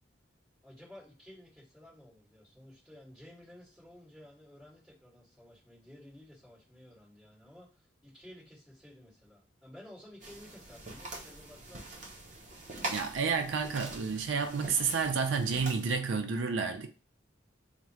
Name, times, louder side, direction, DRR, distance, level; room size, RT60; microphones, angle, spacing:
voice 1, 0.6-12.0, left 1 dB, ahead, 2.1 m, -54 dB
sound 1, 10.2-16.0, right 2 dB, 40° right, 0.7 m, -43 dB
voice 2, 12.9-16.9, right 5 dB, 80° right, 0.5 m, -30 dB
3.5 x 2.1 x 4.3 m
head